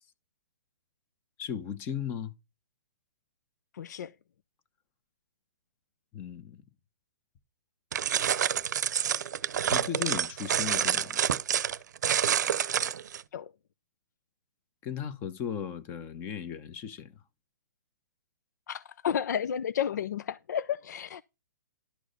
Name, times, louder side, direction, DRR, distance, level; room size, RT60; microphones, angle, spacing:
voice 1, 1.4-2.3 6.1-6.6 9.7-11.2 14.8-17.2, left 8 dB, 20° left, 0.9 m, -36 dB
voice 2, 3.7-4.2 13.3-13.5 18.7-21.2, left 9 dB, 65° left, 0.6 m, -32 dB
sound 1, 7.9-13.2, right 9 dB, 70° right, 0.7 m, -28 dB
11.5 x 4.7 x 6.7 m
hypercardioid pair, 165°, 10 cm